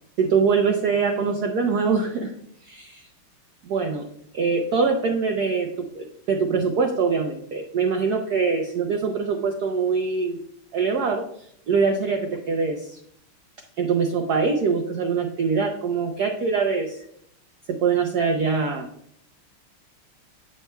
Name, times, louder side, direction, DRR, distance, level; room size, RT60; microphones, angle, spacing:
voice 1, 0.2-2.3 2.6-3.0 3.6-4.1 4.3-10.4 10.7-13.0 13.8-17.0 17.7-18.9, right 5 dB, 75° right, 3 dB, 0.9 m, -23 dB
8.4 x 6.1 x 2.2 m, 0.69 s
omnidirectional pair, 2.4 m